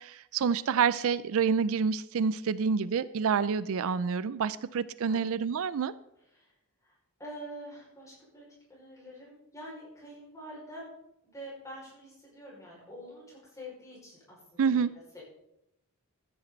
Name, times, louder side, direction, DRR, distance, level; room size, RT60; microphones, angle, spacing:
voice 1, 0.0-5.9 14.6-14.9, right 6 dB, 65° right, 17 dB, 0.4 m, -28 dB
voice 2, 6.8-8.4 8.7-10.9 11.3-14.9 15.1-15.2, equal, 15° left, -5 dB, 5.4 m, -46 dB
14.5 x 10.0 x 4.0 m, 0.82 s
head